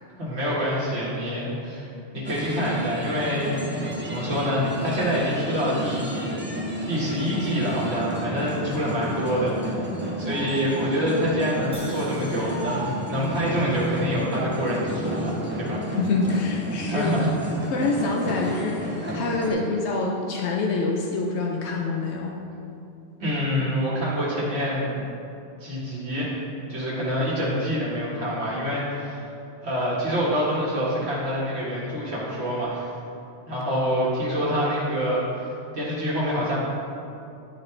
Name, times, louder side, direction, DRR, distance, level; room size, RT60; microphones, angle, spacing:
voice 1, 0.2-1.9 2.1-3.6 4.0-6.4 6.9-15.8 16.9-17.3 23.2-25.0 25.6-26.4 26.7-29.3 29.6-32.9 33.5-35.2 35.7-36.6, equal, 75° right, -7 dB, 1.9 m, -26 dB
sound 1, 2.2-19.5, right 1 dB, 10° right, 0.9 m, -31 dB
Crash cymbal, 11.7-15.8, equal, 5° left, 1.2 m, -48 dB
voice 2, 16.0-17.1 17.6-22.3, left 3 dB, 80° left, -1 dB, 0.9 m, -26 dB
11.0 x 4.0 x 3.2 m, 2.7 s
omnidirectional pair, 1.1 m